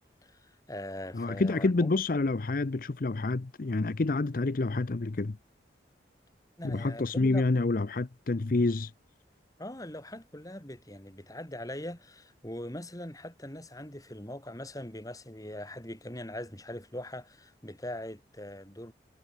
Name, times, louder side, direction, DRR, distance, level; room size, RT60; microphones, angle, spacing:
voice 1, 0.0-2.0 6.6-7.5 9.6-18.9, left 1 dB, 20° left, 4.8 m, -41 dB
voice 2, 1.1-5.4 6.6-8.9, left 3 dB, 50° left, 0.6 m, -28 dB
head